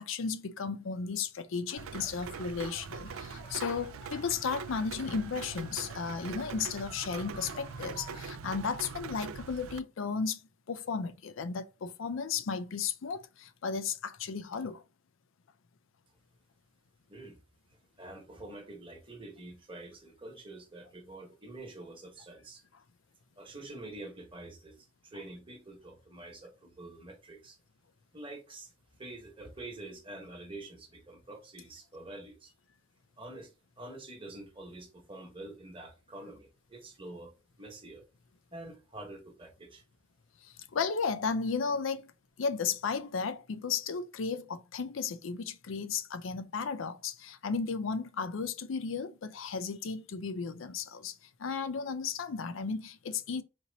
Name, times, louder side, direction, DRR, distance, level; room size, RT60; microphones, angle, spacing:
voice 1, 0.0-10.4 10.7-14.8 40.4-42.1 42.4-53.4, left 5 dB, 70° left, 0.5 m, -34 dB
sound 1, 1.7-8.4, left 2 dB, 45° left, 1.0 m, -54 dB
Rain, 1.8-9.8, right 5 dB, 90° right, 0.4 m, -42 dB
voice 2, 18.0-22.6 23.4-27.6 28.1-28.7 29.0-32.5 33.2-33.5 33.8-37.3 37.6-38.1 38.5-39.8, right 2 dB, 25° right, 1.1 m, -47 dB
4.3 x 2.8 x 3.9 m
head